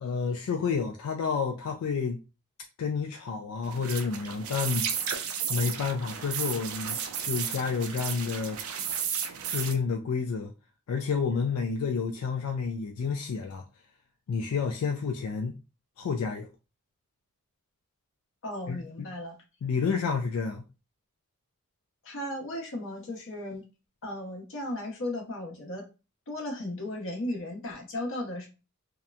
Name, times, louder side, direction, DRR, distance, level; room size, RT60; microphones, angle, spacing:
voice 1, 0.0-2.2 2.8-4.9 5.5-8.6 9.5-10.5 10.9-13.6 14.3-15.5 16.0-16.5 18.7-19.1 19.6-20.6, left 5 dB, 85° left, 0.3 m, -30 dB
sound 1, 3.6-9.7, right 7 dB, 75° right, 0.4 m, -33 dB
voice 2, 18.4-19.4 22.0-23.6 24.0-25.8 26.3-28.5, left 1 dB, 60° left, 0.9 m, -35 dB
2.8 x 2.1 x 2.4 m
head